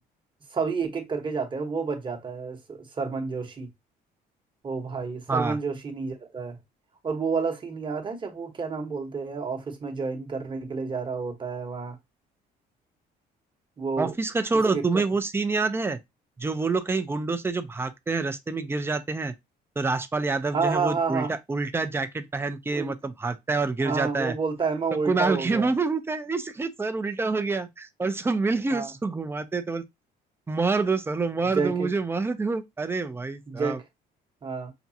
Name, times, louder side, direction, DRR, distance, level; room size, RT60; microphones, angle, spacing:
voice 1, 0.5-3.7 4.6-6.6 7.0-12.0 13.8-14.1 14.7-15.0 20.5-21.3 22.7-22.9 23.8-25.7 28.7-28.9 31.5-31.9 33.5-33.8 34.4-34.7, right 5 dB, 30° right, 1.1 m, -30 dB
voice 2, 14.0-16.0 16.4-19.3 19.8-24.3 25.1-29.8 30.5-33.8, right 3 dB, 15° right, 0.5 m, -27 dB
5.9 x 2.3 x 2.7 m
cardioid pair, 110°, 17 cm